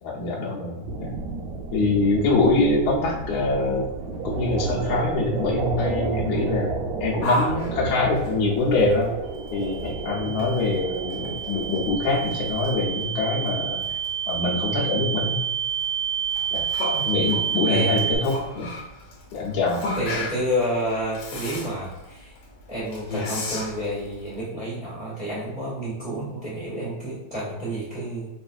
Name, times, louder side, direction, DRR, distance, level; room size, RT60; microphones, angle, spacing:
voice 1, 0.0-1.1 1.7-6.7 7.0-9.1 9.5-13.8 14.3-15.4 16.5-16.6 17.0-18.7 19.3-19.8, left 3 dB, 85° left, -5 dB, 1.1 m, -24 dB
sound 1, 0.8-12.9, right 3 dB, 75° right, 1.7 m, -32 dB
Yell, 7.2-24.4, left 1 dB, 70° left, 1.4 m, -35 dB
sound 2, 9.3-18.2, right 8 dB, 50° right, 0.4 m, -29 dB
voice 2, 10.2-10.6 16.9-17.0 17.7-17.9 19.9-22.3 22.7-28.3, equal, 50° left, -10 dB, 0.5 m, -30 dB
5.4 x 2.6 x 2.5 m, 0.97 s
omnidirectional pair, 3.6 m